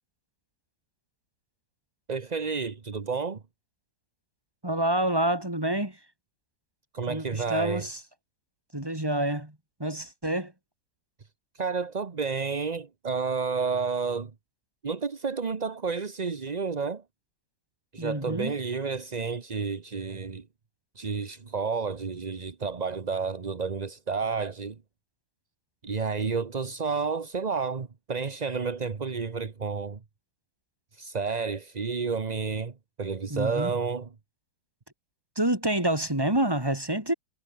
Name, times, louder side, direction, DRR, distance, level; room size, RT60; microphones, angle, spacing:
voice 1, 2.1-3.4 6.9-7.8 11.5-14.3 14.8-17.0 17.9-20.4 21.0-24.8 25.8-30.0 30.9-34.1, right 5 dB, 30° right, 0.9 m, -30 dB
voice 2, 4.6-6.0 7.1-8.0 8.7-10.5 18.0-18.6 33.3-33.7 35.4-37.1, right 1 dB, 10° right, 3.6 m, -28 dB
omnidirectional pair, 2.0 m